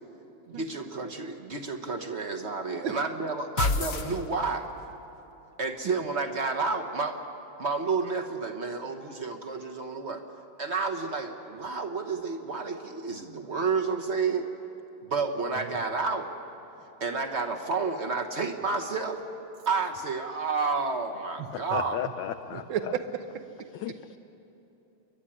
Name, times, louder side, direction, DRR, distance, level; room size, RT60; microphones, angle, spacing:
voice 1, 0.5-4.7 5.6-7.2 7.6-10.2 10.6-14.4 15.0-16.3 17.0-19.2 19.7-22.0, right 4 dB, 40° right, 4 dB, 1.1 m, -30 dB
sound 1, 3.6-4.8, left 3 dB, 50° left, 0.9 m, -29 dB
voice 2, 21.5-22.6 23.7-24.2, left 10 dB, 70° left, 8 dB, 1.2 m, -34 dB
voice 3, 22.5-24.0, right 8 dB, 70° right, 8 dB, 1.7 m, -34 dB
29.0 x 11.5 x 9.9 m, 3.0 s
omnidirectional pair, 2.3 m